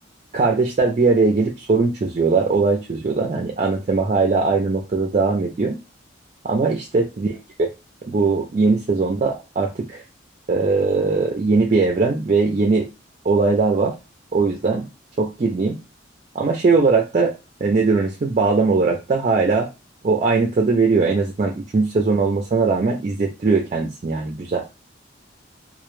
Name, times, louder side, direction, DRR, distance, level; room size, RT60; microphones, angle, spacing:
voice 1, 0.3-5.8 6.4-7.7 8.1-10.0 10.5-12.9 13.2-13.9 14.3-14.9 15.2-15.7 16.3-17.3 17.6-19.7 20.0-24.6, right 4 dB, 40° right, 1 dB, 0.4 m, -20 dB
2.1 x 2.1 x 3.0 m, 0.27 s
head